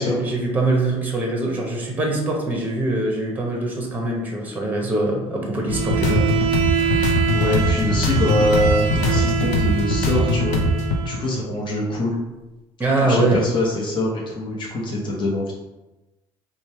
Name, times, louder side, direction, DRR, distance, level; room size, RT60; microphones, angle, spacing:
voice 1, 0.0-6.2 6.8-7.0 12.8-13.4, right 2 dB, 15° right, 0 dB, 0.9 m, -23 dB
sound 1, 5.7-11.0, left 1 dB, 70° left, 0.6 m, -21 dB
Bowed string instrument, 5.7-11.3, right 9 dB, 50° right, 0.6 m, -25 dB
voice 2, 7.0-10.6 11.0-12.2 13.1-15.5, left 1 dB, 40° left, -3 dB, 1.0 m, -24 dB
3.1 x 2.3 x 4.2 m, 1.0 s
cardioid pair, 105°, 12 cm